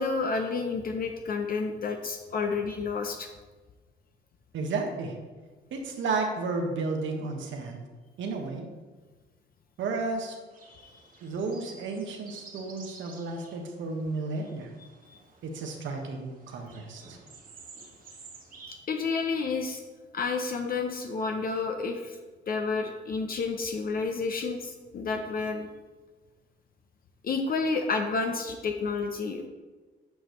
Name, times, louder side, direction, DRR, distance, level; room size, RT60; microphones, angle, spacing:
voice 1, 0.0-3.3 10.7-11.0 15.1-15.2 18.7-19.8 20.1-22.2 22.5-25.7 27.2-29.5, left 4 dB, 50° left, 3 dB, 0.7 m, -30 dB
voice 2, 4.5-5.2 5.7-7.8 8.2-8.7 9.8-10.4 11.2-14.7 15.4-17.2, right 3 dB, 70° right, 2 dB, 1.2 m, -32 dB
sound 1, 10.5-18.8, right 4 dB, 45° right, 1.5 m, -51 dB
8.5 x 5.0 x 3.1 m, 1.3 s
cardioid pair, 90°, 20 cm